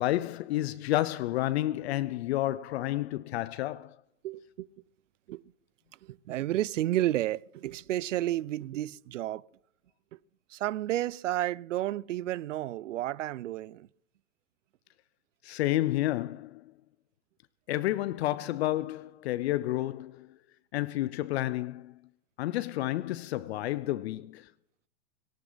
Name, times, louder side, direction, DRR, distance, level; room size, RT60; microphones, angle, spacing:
voice 1, 0.0-4.0 15.4-16.6 17.7-20.3 20.7-21.9 22.4-24.5, left 15 dB, 60° left, 0.6 m, -30 dB
voice 2, 4.2-4.7 5.3-5.4 6.0-9.4 10.5-13.9, right 14 dB, 80° right, 0.6 m, -31 dB
18.0 x 18.0 x 4.0 m
hypercardioid pair, 130°, 37 cm